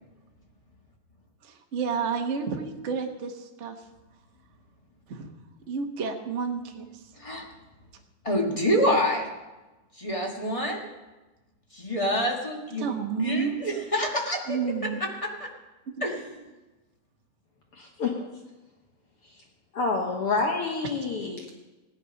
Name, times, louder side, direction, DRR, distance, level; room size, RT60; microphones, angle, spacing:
voice 1, 1.4-3.8 5.1-5.3 5.7-7.0 12.8-13.6 14.5-15.1 15.9-16.0, right 6 dB, 65° right, 3 dB, 0.6 m, -31 dB
voice 2, 8.2-9.3 10.0-10.9 11.7-14.6 15.0-15.5 16.0-16.2, equal, 25° left, 0 dB, 0.7 m, -27 dB
voice 3, 17.7-18.3 19.2-19.4 19.7-21.5, left 4 dB, 60° left, 1 dB, 1.7 m, -28 dB
16.5 x 11.0 x 5.3 m, 1.1 s
omnidirectional pair, 3.5 m